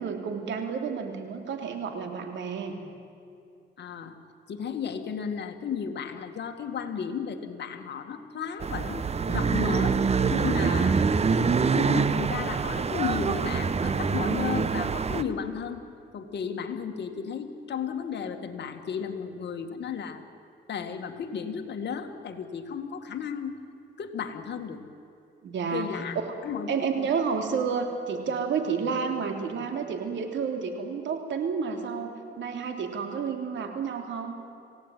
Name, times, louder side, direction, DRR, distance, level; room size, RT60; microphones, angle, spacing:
voice 1, 0.0-2.7 10.6-10.9 25.4-26.3 26.7-32.1 32.4-34.4, right 5 dB, 70° right, 4 dB, 3.2 m, -30 dB
voice 2, 3.8-4.1 4.5-9.0 9.3-10.0 10.3-11.0 11.7-15.8 16.1-20.2 20.7-23.6 24.0-24.8 25.7-26.2 26.4-26.7, left 7 dB, 60° left, 6 dB, 2.1 m, -34 dB
sound 1, 8.6-15.2, right 5 dB, 30° right, 0.9 m, -25 dB
27.0 x 17.0 x 9.2 m, 2.5 s
cardioid pair, 90°, 20 cm